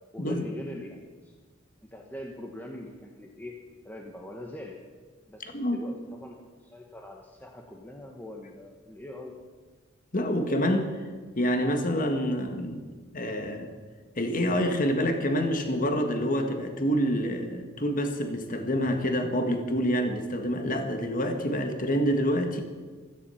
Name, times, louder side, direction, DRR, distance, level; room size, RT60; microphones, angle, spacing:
voice 1, 0.1-1.3 1.8-3.6 3.8-4.8 5.3-9.3, left 1 dB, 10° left, 0 dB, 1.3 m, -42 dB
voice 2, 5.4-5.8 10.1-11.0 11.4-12.8 13.1-13.7 14.2-22.6, equal, 40° left, 6 dB, 1.8 m, -27 dB
16.0 x 14.5 x 5.8 m, 1.4 s
head